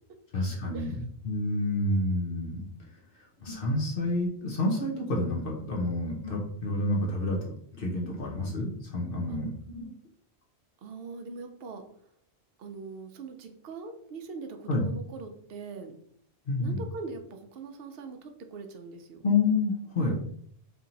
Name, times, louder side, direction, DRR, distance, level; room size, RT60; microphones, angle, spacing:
voice 1, 0.3-2.6 3.1-9.9 14.7-14.9 16.5-16.8 19.2-20.1, left 2 dB, 55° left, -2 dB, 1.0 m, -29 dB
voice 2, 7.0-7.3 9.3-9.4 10.8-11.8 12.6-15.9 16.6-19.2 20.0-20.2, right 4 dB, 65° right, 5 dB, 0.8 m, -42 dB
3.4 x 2.8 x 3.9 m, 0.66 s
omnidirectional pair, 1.1 m